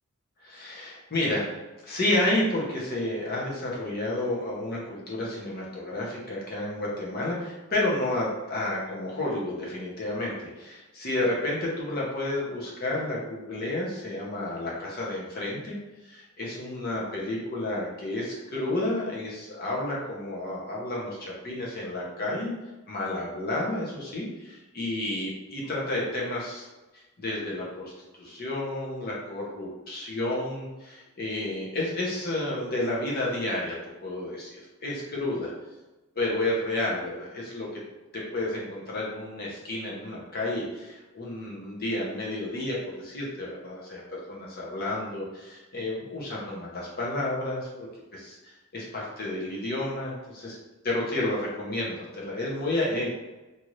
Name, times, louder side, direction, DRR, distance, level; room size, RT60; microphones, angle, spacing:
voice 1, 0.4-1.5 1.8-15.8 16.0-22.6 22.9-26.7 27.2-35.5 36.2-37.8 38.1-47.9 48.1-48.4 48.7-50.6 50.8-53.1, left 1 dB, 40° left, -4 dB, 0.8 m, -31 dB
2.7 x 2.5 x 3.1 m, 1.1 s
head